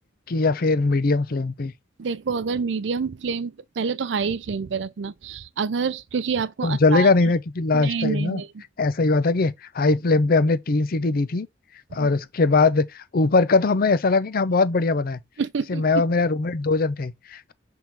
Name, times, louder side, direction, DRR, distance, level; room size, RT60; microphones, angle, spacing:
voice 1, 0.3-1.7 6.6-8.4 8.8-11.5 11.9-15.2 15.7-17.5, left 3 dB, 55° left, 0.6 m, -21 dB
voice 2, 2.0-7.1 7.7-8.5 12.0-12.1 15.4-16.0, right 5 dB, 75° right, 0.5 m, -27 dB
5.9 x 3.7 x 4.5 m
head